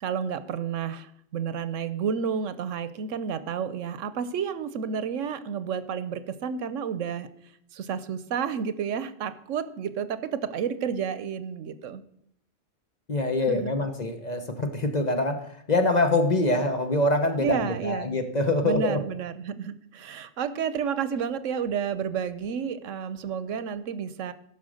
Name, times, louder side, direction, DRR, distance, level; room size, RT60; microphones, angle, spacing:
voice 1, 0.0-7.3 7.7-12.0 13.5-13.7 17.4-18.2 18.6-24.3, right 7 dB, 85° right, 13 dB, 1.1 m, -31 dB
voice 2, 13.1-19.0, left 2 dB, 35° left, 5 dB, 1.1 m, -25 dB
15.0 x 5.7 x 6.4 m, 0.73 s
omnidirectional pair, 1.3 m